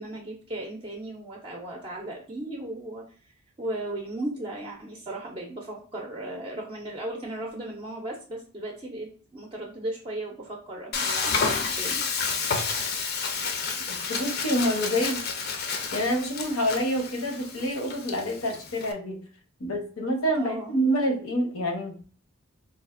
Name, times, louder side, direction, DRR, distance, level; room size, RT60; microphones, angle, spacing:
voice 1, 0.0-3.0 3.6-12.1 20.4-20.7, right 1 dB, 25° right, -1 dB, 0.4 m, -36 dB
Frying (food), 10.9-18.9, left 5 dB, 50° left, 0.5 m, -30 dB
voice 2, 13.9-15.3 15.9-19.2 19.6-21.9, equal, 80° left, 3 dB, 0.8 m, -27 dB
4.0 x 2.4 x 2.4 m, 0.40 s
head